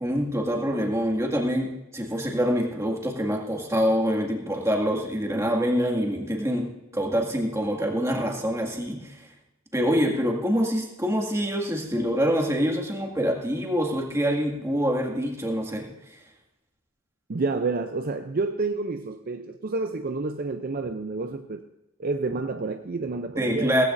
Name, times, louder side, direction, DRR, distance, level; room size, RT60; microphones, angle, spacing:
voice 1, 0.0-9.3 9.7-16.2 23.4-23.8, equal, 15° right, 0 dB, 2.1 m, -25 dB
voice 2, 17.3-21.6 22.0-23.7, right 3 dB, 45° right, 7 dB, 0.5 m, -29 dB
17.0 x 15.5 x 2.6 m, 0.96 s
head